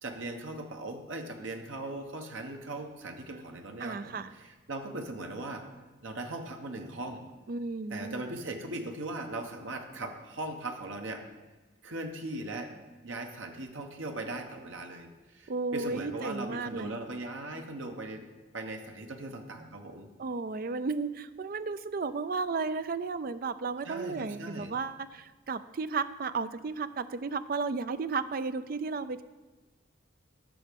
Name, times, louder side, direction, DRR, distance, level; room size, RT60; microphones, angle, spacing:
voice 1, 0.0-5.6 6.0-7.2 7.9-11.2 11.8-12.7 13.0-18.3 18.5-20.1 23.8-24.7, right 2 dB, 80° right, 4 dB, 1.2 m, -39 dB
voice 2, 3.8-4.3 7.5-8.2 15.5-17.0 20.2-29.2, right 4 dB, 45° right, 13 dB, 0.4 m, -34 dB
11.0 x 6.3 x 5.3 m, 1.2 s
head